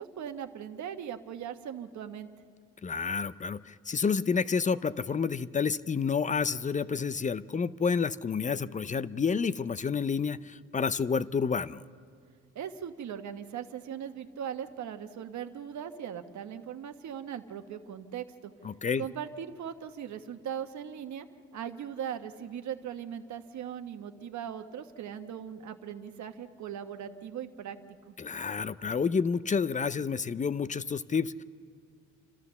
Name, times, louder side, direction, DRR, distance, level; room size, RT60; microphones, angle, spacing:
voice 1, 0.0-2.3 12.5-18.5 19.0-21.3 21.5-27.8 28.1-28.2, right 8 dB, 70° right, 7 dB, 1.3 m, -39 dB
voice 2, 2.8-11.8 18.6-19.1 28.2-31.4, left 5 dB, 25° left, 16 dB, 0.5 m, -29 dB
29.5 x 13.0 x 7.0 m, 2.3 s
cardioid pair, 90°, 30 cm